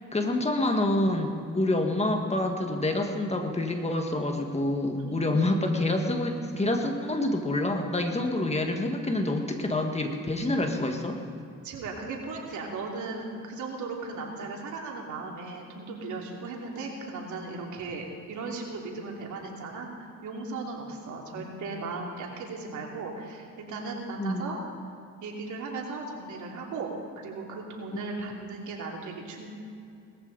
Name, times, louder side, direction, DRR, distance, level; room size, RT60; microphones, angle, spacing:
voice 1, 0.1-11.2 21.4-21.5 24.2-24.4, left 1 dB, 20° left, 4 dB, 1.8 m, -27 dB
voice 2, 5.0-5.4 11.6-24.6 25.2-29.5, right 3 dB, 75° right, -1 dB, 2.9 m, -37 dB
19.5 x 14.5 x 4.1 m, 2.6 s
cardioid pair, 90°, 30 cm